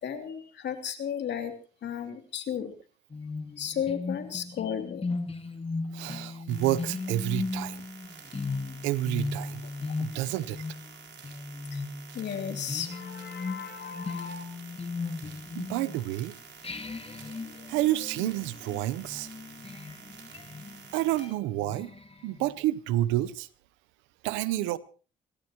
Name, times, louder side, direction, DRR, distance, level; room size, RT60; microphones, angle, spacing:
voice 1, 0.0-1.5 1.8-2.7 3.6-5.1 11.7-11.8 12.1-14.4, left 8 dB, 70° left, 2.9 m, -34 dB
sound 1, 3.1-16.2 16.6-22.5, left 3 dB, 30° left, 2.1 m, -37 dB
voice 2, 5.9-7.8 8.8-9.6 10.0-10.6 15.5-16.3 17.7-19.3 20.9-21.9 22.2-23.5 24.2-24.8, right 15 dB, 90° right, 0.8 m, -29 dB
sound 2, 6.5-21.3, right 6 dB, 75° right, 4.3 m, -50 dB
29.5 x 13.5 x 3.0 m
supercardioid pair, 55°, 19 cm